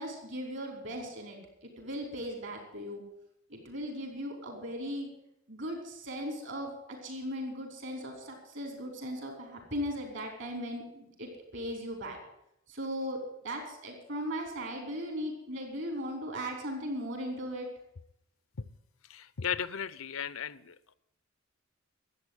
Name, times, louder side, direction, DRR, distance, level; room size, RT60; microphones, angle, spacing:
voice 1, 0.0-3.0 3.5-5.1 5.5-12.2 12.7-17.7, equal, 60° right, 2 dB, 4.9 m, -38 dB
voice 2, 19.0-20.9, left 7 dB, 80° left, 18 dB, 0.7 m, -36 dB
13.5 x 8.9 x 9.9 m, 0.81 s
head